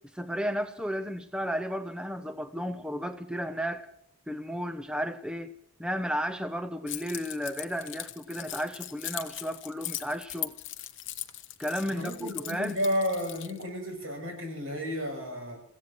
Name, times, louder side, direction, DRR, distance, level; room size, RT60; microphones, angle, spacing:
voice 1, 0.1-3.9 4.3-5.5 5.8-10.5 11.6-12.8, equal, 5° right, 0.5 m, -33 dB
Keys jangling, 6.9-13.6, left 14 dB, 60° left, 0.9 m, -39 dB
voice 2, 11.9-15.6, equal, 75° right, 7.6 m, -32 dB
29.5 x 16.0 x 3.0 m
head